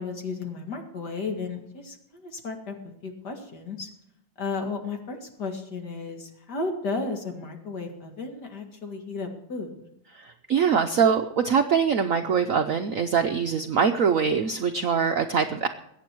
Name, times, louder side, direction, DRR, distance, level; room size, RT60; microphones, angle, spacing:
voice 1, 0.0-2.8 3.0-3.9 4.4-9.9, left 4 dB, 55° left, 3 dB, 2.5 m, -34 dB
voice 2, 10.1-15.7, right 6 dB, 65° right, 6 dB, 0.8 m, -23 dB
22.0 x 8.9 x 4.6 m, 0.78 s
omnidirectional pair, 2.1 m